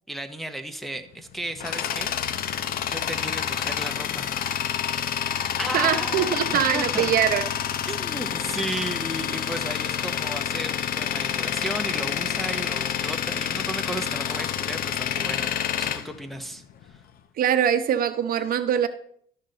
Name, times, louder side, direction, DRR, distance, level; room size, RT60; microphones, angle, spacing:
voice 1, 0.1-2.1 2.9-4.3 5.6-7.1 7.9-16.6 16.9-17.0, right 1 dB, ahead, 4 dB, 0.8 m, -34 dB
Tools, 1.1-17.0, left 9 dB, 60° left, 0.7 m, -28 dB
voice 2, 5.7-7.5 17.4-18.9, right 9 dB, 60° right, 9 dB, 0.8 m, -23 dB
12.5 x 6.6 x 3.9 m, 0.63 s
cardioid pair, 110°, 17 cm